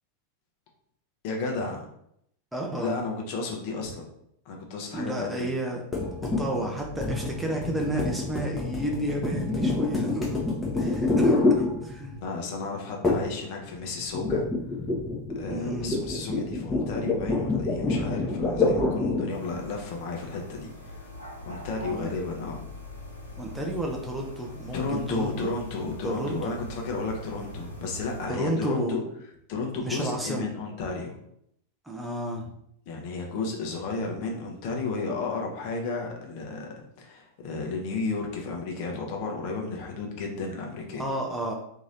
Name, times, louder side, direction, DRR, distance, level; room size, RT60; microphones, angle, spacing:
voice 1, 1.2-1.8 2.8-4.1 4.4-5.5 12.2-14.5 15.3-21.1 21.4-22.6 24.7-29.0 29.5-31.1 32.9-36.7 37.0-41.0, left 3 dB, 45° left, 1 dB, 0.9 m, -33 dB
voice 2, 2.5-3.0 4.9-5.8 6.2-10.4 10.7-12.2 15.5-15.9 21.9-22.1 23.4-25.5 26.0-26.5 28.3-29.0 29.8-30.5 31.8-32.5 41.0-41.6, right 1 dB, 5° right, 0 dB, 0.6 m, -31 dB
sound 1, 5.9-12.2 13.0-13.4 13.7-19.4, left 2 dB, 15° left, 0.9 m, -27 dB
sound 2, 19.3-28.3, equal, 90° right, 0.7 m, -42 dB
3.0 x 2.8 x 3.8 m, 0.73 s
figure-of-eight pair, 90°, 0 cm